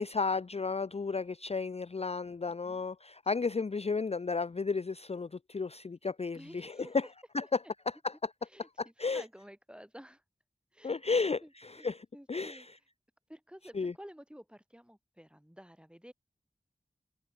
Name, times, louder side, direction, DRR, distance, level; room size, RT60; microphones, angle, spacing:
voice 1, 0.0-7.0 7.3-7.4 8.0-8.1 8.8-9.2 10.8-12.6 13.8-13.9, left 4 dB, 40° left, 0.4 m, -33 dB
voice 2, 2.5-2.9 3.4-3.6 6.3-7.0 8.4-10.2 10.7-12.7 13.3-16.1, equal, 5° right, 3.3 m, -53 dB
wide cardioid pair, 45°, 17 cm